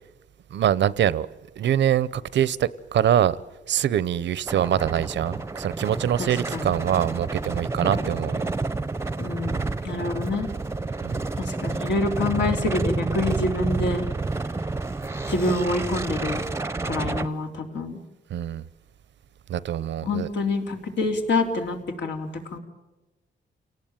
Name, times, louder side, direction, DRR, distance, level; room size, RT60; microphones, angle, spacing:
voice 1, 0.5-1.3 1.6-3.4 3.7-8.5 11.0-11.2 18.3-18.6 19.5-20.3, right 10 dB, 80° right, 0.8 m, -24 dB
sound 1, 4.5-17.3, right 3 dB, 15° right, 0.8 m, -29 dB
voice 2, 6.2-6.8 7.8-8.1 9.2-10.5 11.4-14.0 15.3-16.4 16.8-18.0 20.0-22.6, left 2 dB, 75° left, 3.6 m, -27 dB
29.5 x 18.5 x 9.0 m
wide cardioid pair, 145°, 18 cm